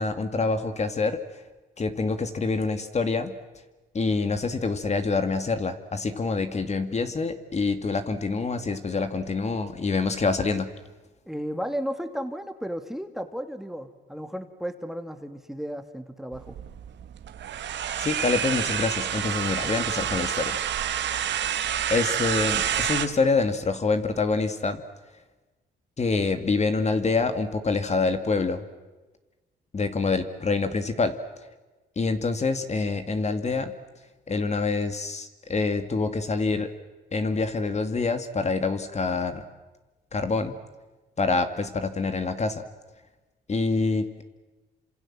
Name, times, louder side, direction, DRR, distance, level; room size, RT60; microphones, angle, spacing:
voice 1, 0.0-1.4 1.8-3.3 3.9-10.7 18.0-20.6 21.9-24.8 26.0-28.6 29.7-31.1 32.0-33.7 34.3-36.7 37.1-39.4 40.1-40.6 41.2-42.7 43.5-44.2, left 4 dB, 35° left, 8 dB, 2.3 m, -26 dB
voice 2, 11.3-16.6, equal, ahead, 9 dB, 2.1 m, -34 dB
sound 1, 16.3-23.1, right 9 dB, 65° right, 1.8 m, -28 dB
29.5 x 26.5 x 7.6 m, 1.2 s
cardioid pair, 90°, 20 cm